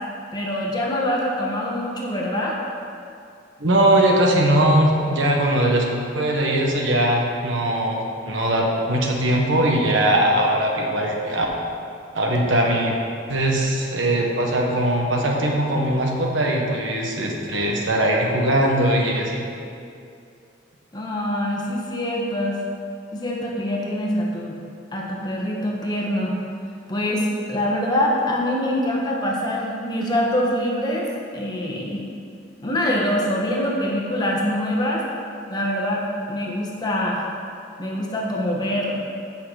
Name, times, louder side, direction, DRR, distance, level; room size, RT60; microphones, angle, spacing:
voice 1, 0.3-2.6 20.9-22.6 23.1-24.5 24.9-26.3 26.9-32.0 32.6-35.1 35.5-37.3 37.8-39.0, left 1 dB, 20° left, -2 dB, 1.2 m, -24 dB
voice 2, 3.6-5.9 6.1-11.4 12.1-13.0 13.3-19.5, right 1 dB, 85° right, 0 dB, 1.4 m, -20 dB
15.0 x 6.0 x 4.0 m, 2.5 s
head